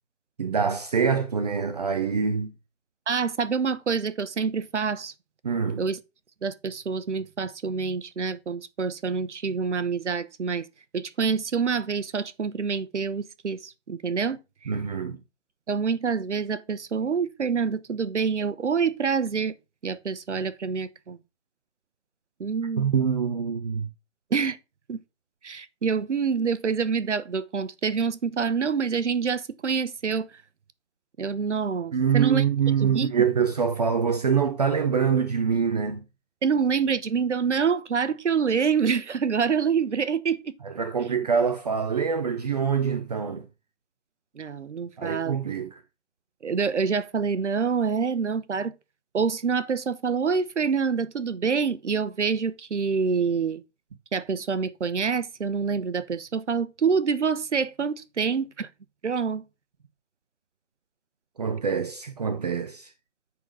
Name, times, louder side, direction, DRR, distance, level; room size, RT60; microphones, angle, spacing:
voice 1, 0.4-2.5 5.4-5.8 14.7-15.2 22.8-23.9 31.9-36.0 40.6-43.4 45.0-45.7 61.4-62.9, right 6 dB, 35° right, 0.6 m, -25 dB
voice 2, 3.1-5.1 5.8-6.0 6.4-10.7 10.9-14.7 15.7-19.6 19.8-21.2 22.4-22.9 24.3-24.6 24.9-25.0 25.4-30.3 31.2-32.4 32.8-33.1 36.4-40.5 41.1-41.2 44.4-45.4 46.4-48.8 49.1-53.6 54.1-58.7 59.0-59.4, right 5 dB, 85° right, 0.9 m, -26 dB
9.1 x 4.1 x 4.9 m
hypercardioid pair, 155°, 34 cm